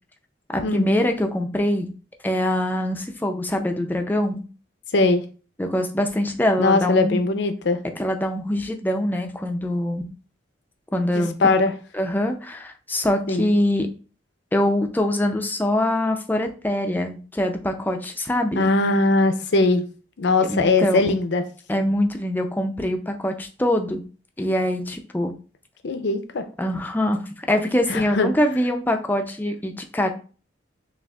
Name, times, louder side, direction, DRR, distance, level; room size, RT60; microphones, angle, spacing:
voice 1, 0.5-1.9 2.2-4.4 5.6-7.2 8.0-10.0 10.9-11.3 11.9-13.9 14.5-18.7 20.5-21.1 21.7-24.0 24.4-25.3 26.6-30.1, left 1 dB, 10° left, 4 dB, 0.4 m, -23 dB
voice 2, 4.9-5.2 6.6-7.8 11.1-11.7 13.3-13.5 18.6-19.8 20.2-21.4 25.8-26.4 27.9-28.3, left 3 dB, 65° left, 8 dB, 0.5 m, -20 dB
6.0 x 2.4 x 2.3 m, 0.38 s
head